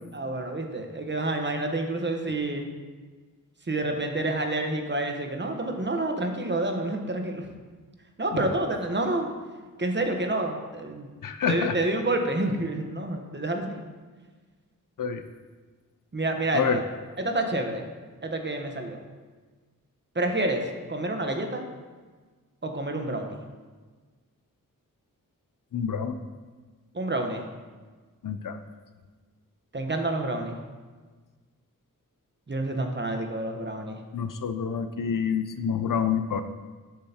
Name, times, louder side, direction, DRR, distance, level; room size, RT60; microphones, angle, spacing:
voice 1, 0.1-2.7 3.7-7.5 8.2-9.3 9.8-11.1 11.5-13.8 16.1-16.8 17.2-17.9 18.2-19.0 20.1-20.6 20.9-21.6 22.6-23.4 26.9-27.4 29.7-30.6 32.5-34.0, right 2 dB, 30° right, 4 dB, 1.0 m, -28 dB
voice 2, 11.2-11.8 15.0-15.2 16.5-16.8 25.7-26.2 28.2-28.6 34.1-36.4, left 6 dB, 70° left, 9 dB, 0.5 m, -27 dB
10.5 x 6.3 x 2.8 m, 1.4 s
cardioid pair, 55°, 34 cm